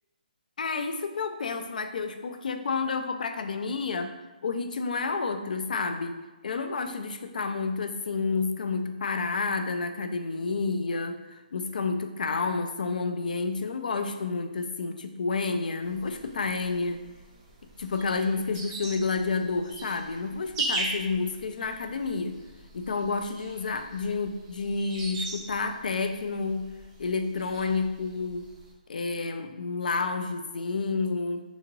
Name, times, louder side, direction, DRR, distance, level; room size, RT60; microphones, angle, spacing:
voice 1, 0.6-4.1 4.4-6.2 6.4-17.0 17.8-22.4 22.7-26.7 27.0-28.5 28.9-31.4, left 4 dB, 65° left, 7 dB, 0.4 m, -30 dB
sound 1, 15.8-28.7, right 2 dB, 15° right, 0.4 m, -40 dB
3.5 x 2.8 x 2.9 m, 1.1 s
hypercardioid pair, 170°, 5 cm